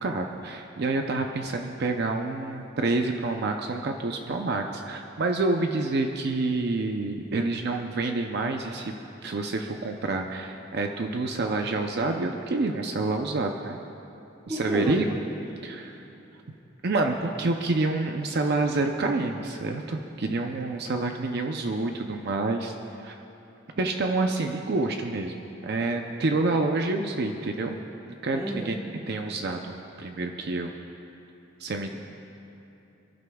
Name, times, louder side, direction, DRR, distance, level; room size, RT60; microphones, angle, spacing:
voice 1, 0.0-8.9 9.2-13.8 14.5-15.1 15.6-16.0 16.8-23.2 23.8-27.8 28.0-28.8 29.1-30.7 31.6-31.9, right 3 dB, 55° right, 4 dB, 0.6 m, -28 dB
voice 2, 14.5-15.2 28.3-28.8, right 1 dB, 15° right, -2 dB, 1.3 m, -31 dB
29.5 x 11.5 x 2.3 m, 3.0 s
head